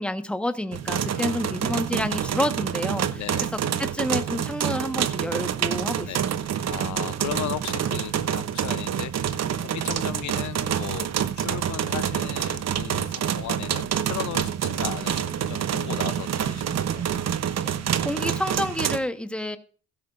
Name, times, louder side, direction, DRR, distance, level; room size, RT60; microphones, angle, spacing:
voice 1, 0.0-3.2 3.8-6.1 17.7-17.8 18.0-19.6, left 1 dB, 5° left, 1.2 m, -29 dB
sound 1, 0.7-19.0, right 9 dB, 60° right, 0.9 m, -27 dB
voice 2, 1.1-2.0 3.1-3.5 6.0-6.3 6.6-17.1, left 13 dB, 70° left, 0.7 m, -37 dB
16.0 x 12.5 x 2.5 m
cardioid pair, 90°, 30 cm